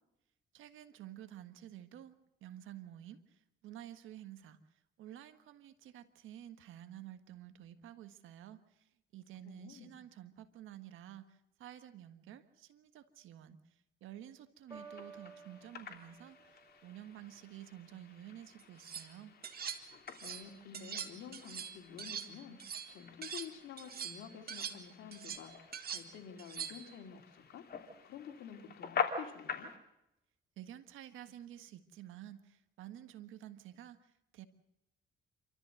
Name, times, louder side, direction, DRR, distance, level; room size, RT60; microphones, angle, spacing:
voice 1, 0.5-2.1 2.4-4.6 5.0-19.3 30.6-34.5, right 12 dB, 85° right, 11 dB, 1.5 m, -51 dB
voice 2, 9.4-9.9 20.2-27.7 28.0-29.7, left 7 dB, 80° left, 5 dB, 2.7 m, -50 dB
sound 1, 14.7-29.8, left 6 dB, 50° left, 3.2 m, -45 dB
Piano, 14.7-21.3 22.1-22.2, right 4 dB, 20° right, 3.4 m, -58 dB
sound 2, 18.6-19.1 19.4-20.5 20.7-23.5 23.8-26.9, right 7 dB, 50° right, 1.9 m, -43 dB
28.0 x 13.5 x 7.8 m, 0.89 s
cardioid pair, 90°, 20 cm